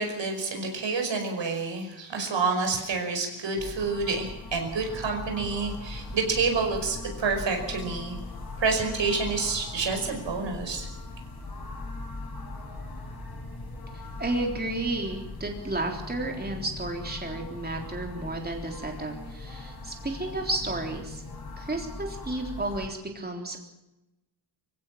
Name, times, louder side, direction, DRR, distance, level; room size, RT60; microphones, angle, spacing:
voice 1, 0.0-8.2 8.6-10.9, right 4 dB, 85° right, 3 dB, 5.4 m, -28 dB
sound 1, 3.6-22.9, left 2 dB, 55° left, 6.0 m, -40 dB
voice 2, 13.9-21.2 21.6-23.6, right 2 dB, 20° right, 2 dB, 3.6 m, -32 dB
25.0 x 16.0 x 7.5 m, 0.95 s
wide cardioid pair, 145°, 43 cm